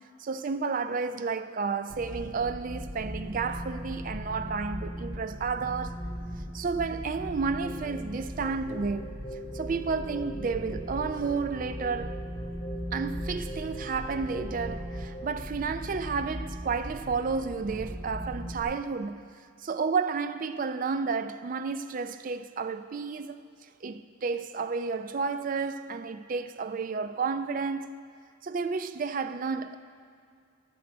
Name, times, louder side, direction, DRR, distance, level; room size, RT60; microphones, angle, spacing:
voice 1, 0.2-6.0 6.5-9.2 9.5-12.2 12.9-19.3 19.6-23.4 23.8-27.9 28.4-29.8, right 5 dB, 40° right, 0.4 m, -31 dB
sound 1, 1.9-18.6, equal, ahead, 1.3 m, -38 dB
sound 2, 7.6-15.3, right 1 dB, 25° left, 1.1 m, -43 dB
14.5 x 6.3 x 5.1 m
head